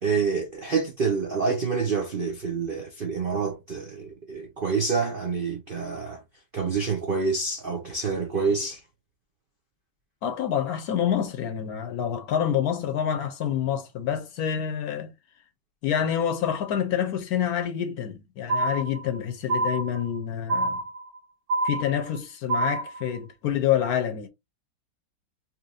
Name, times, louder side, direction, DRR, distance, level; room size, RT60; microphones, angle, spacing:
voice 1, 0.0-6.2 6.5-8.8, right 5 dB, 90° right, 0.4 m, -27 dB
voice 2, 10.2-15.1 15.8-20.8 21.6-24.3, left 9 dB, 65° left, 1.0 m, -27 dB
sound 1, 18.5-19.2 19.5-20.2 20.5-21.2 21.5-22.2 22.5-23.2, right 2 dB, 60° right, 1.3 m, -27 dB
4.2 x 3.0 x 2.6 m
omnidirectional pair, 2.1 m